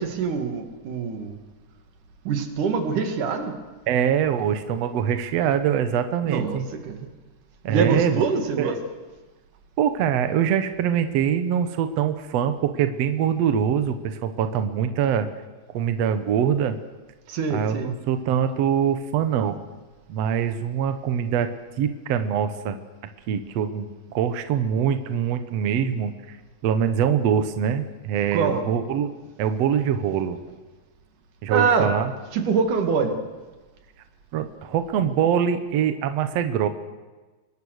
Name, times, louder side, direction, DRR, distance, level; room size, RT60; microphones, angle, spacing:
voice 1, 0.0-1.4 2.2-3.6 6.3-7.1 7.7-8.8 17.3-17.9 28.3-28.7 31.5-31.9 32.3-33.3, right 5 dB, 55° right, 6 dB, 3.1 m, -24 dB
voice 2, 3.9-6.6 7.6-8.2 8.6-8.8 9.8-15.3 15.7-16.8 17.5-19.6 20.1-21.5 21.8-22.8 23.3-26.4 26.6-29.1 29.4-30.4 31.4-32.1 34.3-36.7, right 8 dB, 85° right, 9 dB, 1.4 m, -23 dB
25.5 x 23.0 x 6.6 m, 1.2 s
omnidirectional pair, 4.8 m